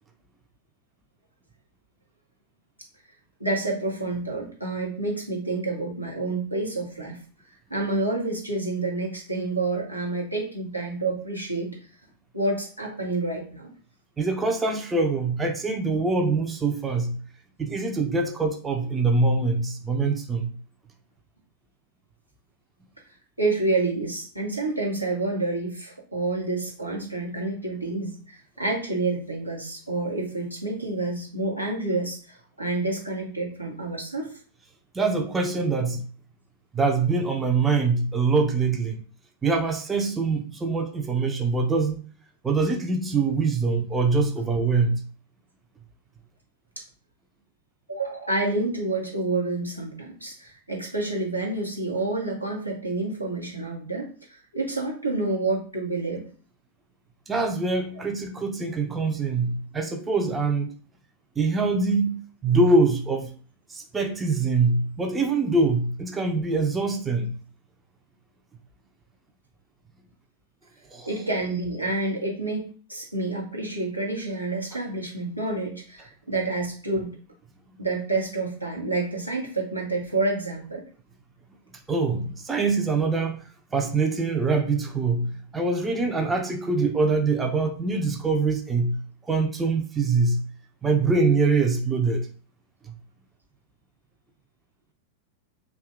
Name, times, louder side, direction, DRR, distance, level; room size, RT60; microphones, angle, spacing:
voice 1, 3.4-7.2 7.7-11.7 12.3-13.7 23.4-34.4 46.8-46.9 47.9-56.2 57.9-58.0 71.1-77.2 77.8-80.8, right 2 dB, 90° right, -2 dB, 0.9 m, -28 dB
voice 2, 14.2-17.2 17.6-20.5 34.9-36.1 36.7-39.0 39.4-42.0 42.4-45.0 57.3-60.7 61.4-63.3 63.7-67.4 70.9-71.1 81.9-83.4 83.7-90.5 90.8-92.3 92.9-93.0, right 3 dB, 15° right, 3 dB, 0.5 m, -24 dB
2.7 x 2.3 x 3.6 m, 0.41 s
figure-of-eight pair, 90°, 0 cm